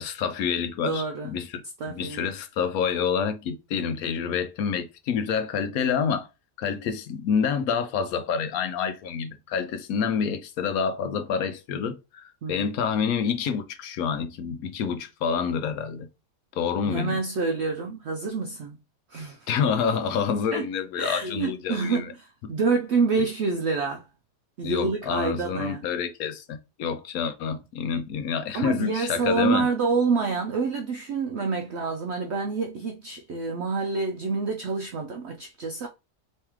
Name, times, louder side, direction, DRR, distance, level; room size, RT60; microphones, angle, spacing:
voice 1, 0.0-1.6 1.9-6.3 6.6-16.1 16.5-17.2 19.5-22.1 22.4-22.5 24.6-29.7, left 6 dB, 70° left, 1.0 m, -28 dB
voice 2, 0.9-1.3 1.8-2.3 12.4-12.7 16.9-18.8 19.1-19.5 20.5-20.7 21.0-24.0 24.6-25.9 28.5-35.9, right 4 dB, 80° right, 0.6 m, -27 dB
3.4 x 3.2 x 3.0 m
omnidirectional pair, 1.7 m